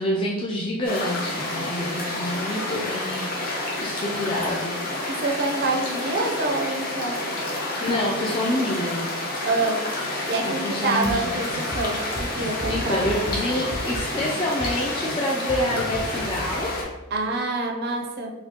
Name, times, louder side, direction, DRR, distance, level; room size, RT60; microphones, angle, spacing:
voice 1, 0.0-4.8 7.8-9.1 10.4-11.3 12.7-16.7, left 1 dB, 25° left, -4 dB, 0.3 m, -27 dB
sound 1, 0.8-16.8, left 2 dB, 45° left, 0.8 m, -29 dB
voice 2, 5.2-7.2 9.4-9.8 10.3-13.0 17.1-18.3, right 2 dB, 50° right, 1 dB, 0.4 m, -26 dB
sound 2, 11.0-17.3, equal, 65° left, 1.4 m, -35 dB
4.3 x 2.2 x 2.8 m, 1.1 s
head